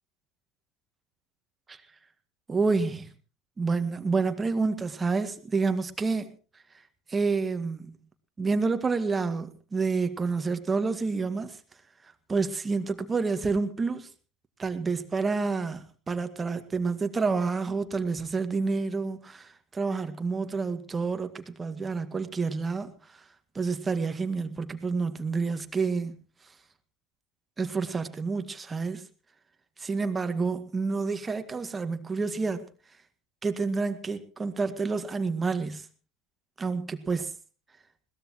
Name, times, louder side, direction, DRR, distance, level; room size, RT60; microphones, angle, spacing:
voice 1, 2.5-3.1 3.6-6.3 7.1-8.0 8.4-11.6 12.3-14.1 14.6-23.2 23.6-26.1 27.6-29.0 29.8-32.6 33.4-35.9 36.6-37.3, right 4 dB, 20° right, 1.9 m, -29 dB
21.5 x 18.0 x 3.1 m
figure-of-eight pair, 75°, 0 cm